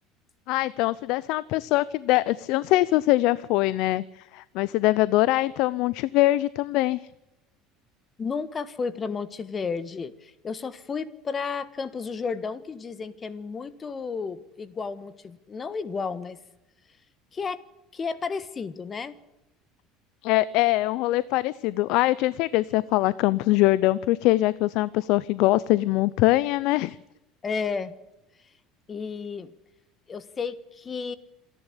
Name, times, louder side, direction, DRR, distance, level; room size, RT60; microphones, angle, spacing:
voice 1, 0.5-4.0 4.3-7.0 20.2-27.0, left 17 dB, 65° left, 19 dB, 0.6 m, -23 dB
voice 2, 8.2-16.4 17.3-17.6 17.9-19.2 27.4-27.9 28.9-29.5 30.1-31.2, left 5 dB, 25° left, 15 dB, 1.5 m, -32 dB
27.5 x 11.0 x 9.9 m, 0.97 s
supercardioid pair, 125°, 0 cm